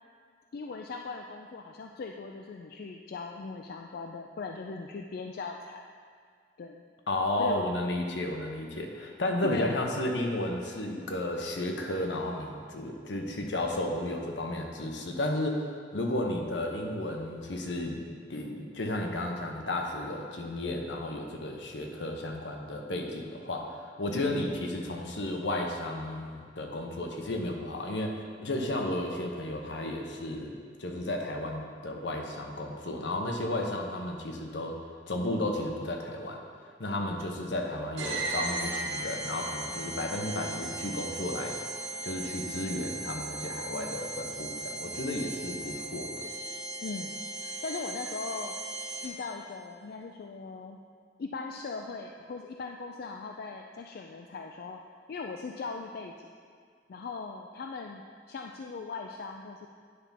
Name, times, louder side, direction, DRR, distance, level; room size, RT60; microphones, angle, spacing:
voice 1, 0.5-5.9 6.6-6.8 7.4-7.7 9.4-9.8 24.1-24.4 46.8-48.5 49.0-50.8 51.2-54.8 55.1-56.3 56.9-59.7, left 4 dB, 55° left, 3 dB, 0.3 m, -39 dB
voice 2, 7.1-15.7 15.9-34.8 35.1-36.4 36.8-41.6 42.0-46.3, left 1 dB, 75° left, 2 dB, 0.9 m, -33 dB
sound 1, 38.0-49.4, right 2 dB, 80° right, 1.4 m, -37 dB
9.5 x 3.5 x 5.7 m, 2.1 s
head